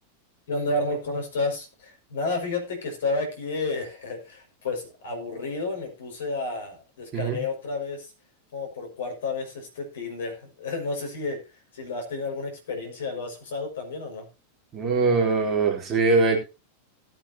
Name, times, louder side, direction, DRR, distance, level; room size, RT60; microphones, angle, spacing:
voice 1, 0.5-8.1 8.5-11.4 11.7-14.3, left 3 dB, 60° left, 3 dB, 5.7 m, -31 dB
voice 2, 14.7-16.4, right 3 dB, 25° right, 1 dB, 3.6 m, -22 dB
17.5 x 9.1 x 2.8 m, 0.28 s
figure-of-eight pair, 90°, 0 cm